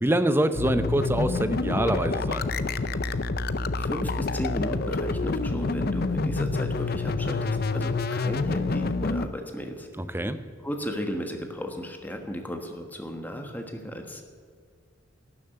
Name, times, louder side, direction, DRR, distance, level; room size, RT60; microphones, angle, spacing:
voice 1, 0.0-2.4 10.0-10.4, right 1 dB, 10° right, 10 dB, 0.6 m, -25 dB
sound 1, 0.5-9.3, left 3 dB, 50° left, 0.6 m, -27 dB
voice 2, 3.8-9.9 10.6-14.2, equal, 10° left, 4 dB, 1.3 m, -35 dB
12.0 x 7.2 x 9.6 m, 2.1 s
head